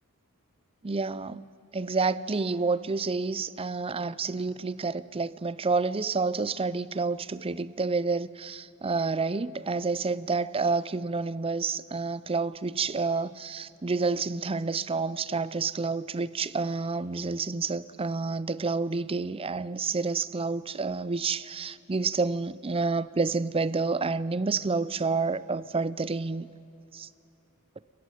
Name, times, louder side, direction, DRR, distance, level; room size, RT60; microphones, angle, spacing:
voice 1, 0.8-1.4 1.7-26.5 26.9-27.1, right 4 dB, 25° right, 0.6 m, -29 dB
29.5 x 14.5 x 9.3 m
head